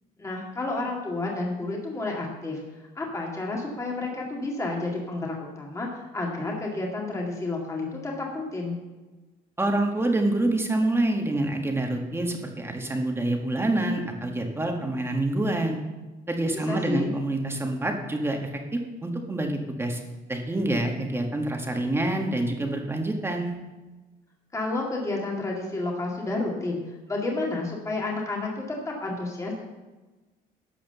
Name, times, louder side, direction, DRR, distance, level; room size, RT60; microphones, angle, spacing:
voice 1, 0.2-2.6 3.0-8.8 16.7-17.1 24.5-26.8 27.1-29.6, left 2 dB, 20° left, -1 dB, 2.1 m, -30 dB
voice 2, 9.6-15.8 16.3-20.0 20.3-23.6, right 1 dB, 15° right, 3 dB, 1.6 m, -27 dB
12.0 x 4.9 x 6.9 m, 1.2 s
cardioid pair, 110°, 17 cm